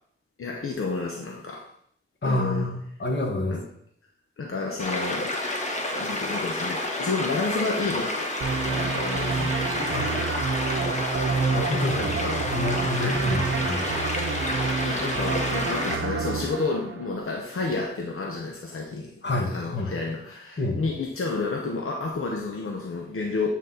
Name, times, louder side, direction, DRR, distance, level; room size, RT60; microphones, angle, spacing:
voice 1, 0.4-1.6 2.2-2.7 3.5-3.6 4.4-5.5 5.9-8.3 8.7-10.0 12.0-12.5 12.8-13.2 14.8-19.1 19.4-23.5, left 3 dB, 85° left, 0 dB, 0.9 m, -31 dB
voice 2, 2.2-3.6 9.9-10.1 11.5-12.2 12.4-13.8 19.2-19.9 20.6-20.8, left 2 dB, 60° left, 1 dB, 1.7 m, -28 dB
sound 1, 4.8-16.0, left 1 dB, 35° left, 1.3 m, -30 dB
sound 2, 8.4-17.5, right 4 dB, 80° right, 0.8 m, -29 dB
8.4 x 4.2 x 4.1 m, 0.66 s
wide cardioid pair, 70°, 21 cm